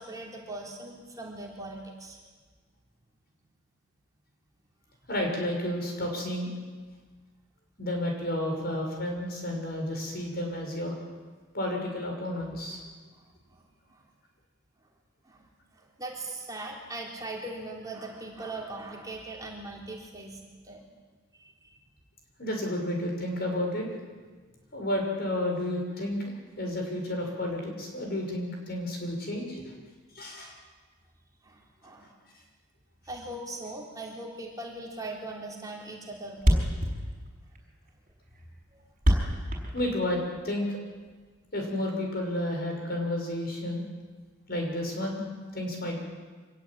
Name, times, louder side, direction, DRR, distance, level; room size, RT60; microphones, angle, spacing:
voice 1, 0.0-2.2 13.1-13.2 13.9-14.0 15.2-20.4 20.6-20.9 21.4-21.7 31.4-32.1 33.0-36.7, right 2 dB, 15° right, -1 dB, 3.5 m, -40 dB
voice 2, 5.1-6.5 7.8-10.9 11.5-12.8 22.4-23.9 24.7-29.7 30.1-30.5 39.7-40.8 41.5-43.8 44.5-45.2 45.5-46.0, left 1 dB, 50° left, 1 dB, 6.6 m, -31 dB
Thump thud, 35.0-35.2 35.5-35.6 35.8-35.9 36.1-36.2 36.4-40.4, equal, 40° right, 5.5 m, -25 dB
25.0 x 21.0 x 8.9 m, 1.4 s
head